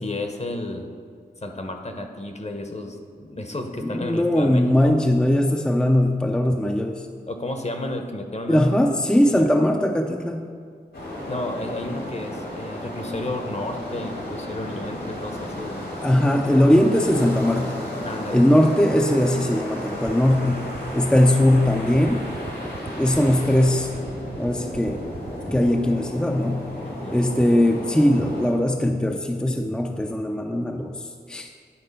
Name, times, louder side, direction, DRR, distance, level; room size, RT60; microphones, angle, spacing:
voice 1, 0.0-0.9 1.4-5.0 7.3-8.7 9.3-9.5 11.3-15.9 18.0-18.4 26.8-27.2, left 1 dB, 40° left, 4 dB, 0.9 m, -32 dB
voice 2, 3.8-7.1 8.5-10.4 16.0-17.8 18.3-20.7 20.9-22.3 23.0-23.9 24.3-25.0 25.5-26.7 27.1-31.5, left 1 dB, 5° left, 2 dB, 0.5 m, -20 dB
sound 1, 10.9-28.5, left 1 dB, 75° left, 2.0 m, -33 dB
sound 2, 20.1-25.9, right 4 dB, 55° right, 0.7 m, -37 dB
9.8 x 3.8 x 5.4 m, 2.1 s
cardioid pair, 40°, 18 cm